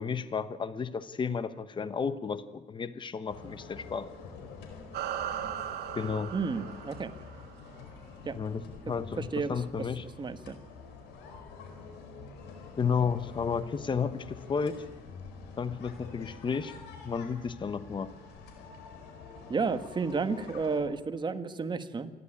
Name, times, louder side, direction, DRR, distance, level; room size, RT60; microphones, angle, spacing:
voice 1, 0.0-4.1 5.9-6.4 8.3-10.1 12.8-14.8 15.6-16.8 17.0-18.1, left 6 dB, 30° left, 13 dB, 1.1 m, -32 dB
sound 1, 3.3-20.8, left 4 dB, 90° left, 4.5 m, -47 dB
sound 2, 4.9-7.7, right 11 dB, 75° right, 1.9 m, -38 dB
voice 2, 6.3-7.1 8.2-8.3 9.2-9.5 10.2-10.5 19.5-22.1, right 4 dB, 25° right, 9 dB, 1.5 m, -31 dB
27.5 x 11.5 x 9.8 m, 1.2 s
cardioid pair, 110°, 17 cm